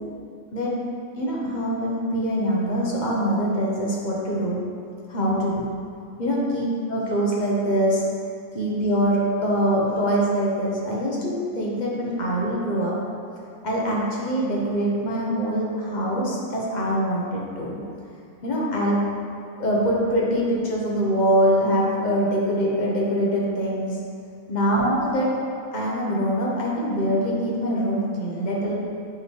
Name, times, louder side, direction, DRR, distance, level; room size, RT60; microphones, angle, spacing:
voice 1, 1.2-4.6 5.1-5.6 6.2-8.0 8.5-13.0 13.6-17.8 18.4-19.0 19.6-24.0 24.5-25.3 25.7-28.7, equal, 35° left, -4 dB, 1.0 m, -23 dB
8.1 x 3.8 x 3.2 m, 2.4 s
omnidirectional pair, 1.4 m